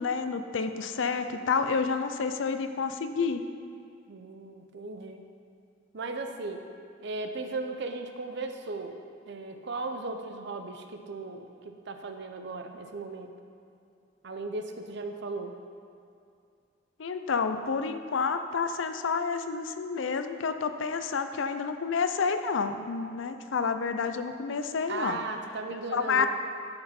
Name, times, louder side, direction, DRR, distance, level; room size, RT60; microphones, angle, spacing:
voice 1, 0.0-3.4 17.0-25.2 25.9-26.3, left 5 dB, 65° left, 9 dB, 0.5 m, -29 dB
voice 2, 4.1-5.3 5.9-6.6 7.0-9.0 9.3-13.4 14.2-15.6 24.9-26.3, right 3 dB, 60° right, 6 dB, 0.6 m, -37 dB
11.5 x 5.3 x 4.3 m, 2.4 s
head